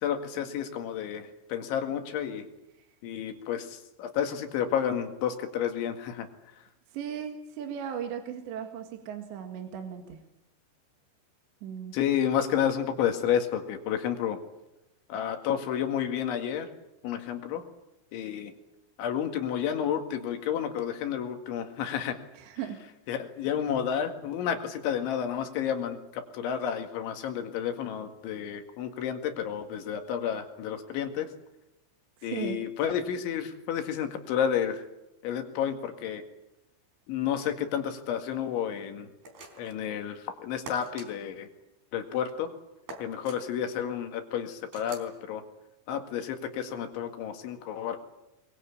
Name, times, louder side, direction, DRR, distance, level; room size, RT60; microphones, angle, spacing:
voice 1, 0.0-2.5 3.0-6.3 11.9-14.4 15.1-16.7 17.0-17.6 18.1-18.5 19.0-22.2 23.1-31.3 32.2-34.8 35.2-36.2 37.1-39.1 39.6-41.5 41.9-42.5 43.0-45.4 45.9-48.0, left 9 dB, 70° left, 6 dB, 4.3 m, -31 dB
voice 2, 6.9-10.2 11.6-12.0 22.3-22.8 32.2-32.6, right 8 dB, 65° right, 4 dB, 3.8 m, -37 dB
sound 1, 39.2-39.8 40.7-41.1 42.9-43.4 44.7-45.1, right 2 dB, 50° right, 5.6 m, -43 dB
24.0 x 23.0 x 8.6 m, 0.92 s
omnidirectional pair, 5.9 m